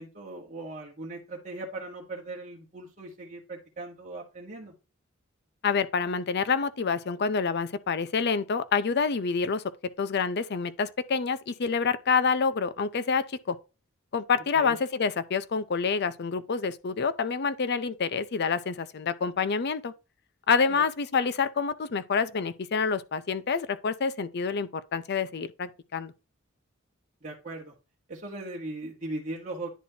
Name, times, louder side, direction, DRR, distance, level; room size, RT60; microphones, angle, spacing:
voice 1, 0.0-4.7 14.5-14.8 20.7-20.8 27.2-27.7 28.1-29.7, right 2 dB, 35° right, 1.2 m, -39 dB
voice 2, 5.6-9.6 10.0-13.6 14.1-19.9 20.5-26.1, left 5 dB, 55° left, 0.5 m, -27 dB
10.0 x 4.2 x 2.7 m
head